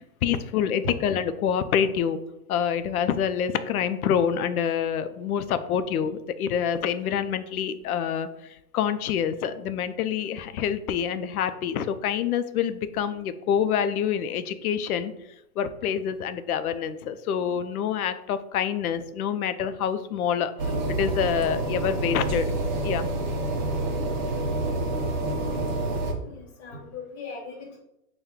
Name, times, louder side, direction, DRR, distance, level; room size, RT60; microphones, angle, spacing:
voice 1, 0.0-2.2 2.5-15.1 15.6-22.5 22.8-23.1, left 8 dB, 70° left, 11 dB, 0.5 m, -27 dB
sound 1, 20.6-26.1, right 2 dB, 30° right, 0.5 m, -28 dB
voice 2, 26.2-27.8, left 4 dB, 45° left, -1 dB, 1.4 m, -40 dB
4.2 x 2.2 x 3.6 m, 0.84 s
hypercardioid pair, 140°, 45 cm